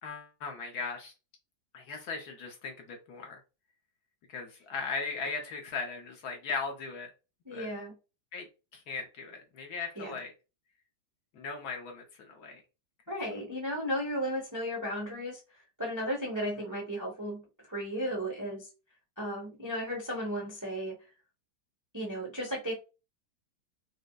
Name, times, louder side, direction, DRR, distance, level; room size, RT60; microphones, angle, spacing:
voice 1, 0.0-1.1 1.7-3.4 4.3-7.1 7.5-7.7 8.3-8.5 8.7-10.3 11.3-12.6, left 4 dB, 65° left, 2 dB, 1.1 m, -38 dB
voice 2, 7.4-7.9 10.0-10.2 13.1-17.4 17.7-18.7 19.2-20.9 21.9-22.7, equal, 20° right, -2 dB, 0.4 m, -35 dB
5.0 x 2.0 x 2.3 m, 0.30 s
omnidirectional pair, 2.0 m